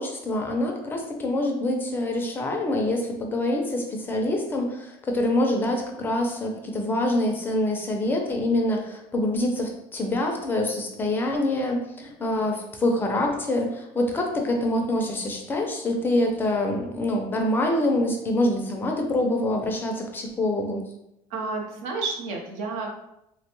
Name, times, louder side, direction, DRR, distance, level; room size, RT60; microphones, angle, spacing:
voice 1, 0.0-20.8, left 1 dB, 15° left, 2 dB, 0.4 m, -25 dB
voice 2, 21.3-23.0, right 3 dB, 80° right, 1 dB, 0.7 m, -31 dB
3.2 x 2.2 x 2.9 m, 0.83 s
cardioid pair, 160°, 12 cm